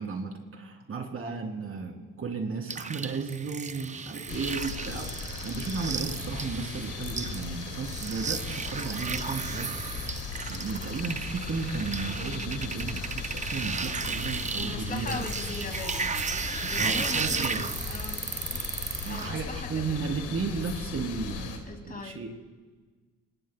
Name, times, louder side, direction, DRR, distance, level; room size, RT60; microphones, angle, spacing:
voice 1, 0.0-9.7 10.5-15.2 16.8-17.6 19.0-22.3, right 4 dB, 45° right, 2 dB, 3.3 m, -34 dB
granular synthesizer waterdrops, 2.7-19.3, right 5 dB, 25° right, 0.6 m, -34 dB
sound 1, 4.3-21.6, left 5 dB, 85° left, 2.4 m, -38 dB
voice 2, 14.6-16.1 16.7-18.3 18.6-18.7 19.1-20.1 21.6-22.2, left 3 dB, 30° left, 5 dB, 2.2 m, -39 dB
26.5 x 20.5 x 2.3 m, 1.4 s
cardioid pair, 90°, 30 cm